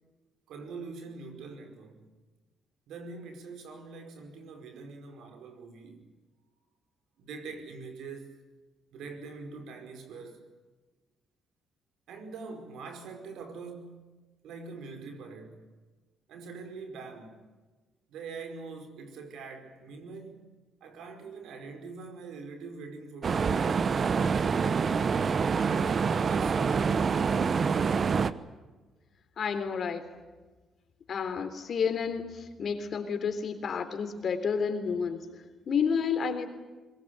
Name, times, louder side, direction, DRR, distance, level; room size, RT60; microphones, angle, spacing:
voice 1, 0.5-2.0 2.9-6.1 7.2-8.3 8.9-10.4 12.1-14.2 14.4-15.6 16.3-17.4 18.1-20.5 20.8-25.2 25.6-27.1, right 4 dB, 80° right, 5.0 m, -44 dB
sound 1, 23.2-28.3, right 5 dB, 45° right, 1.1 m, -26 dB
voice 2, 29.4-30.1 31.1-36.5, left 6 dB, 55° left, 3.5 m, -30 dB
22.5 x 21.0 x 9.5 m
cardioid pair, 85°, 0 cm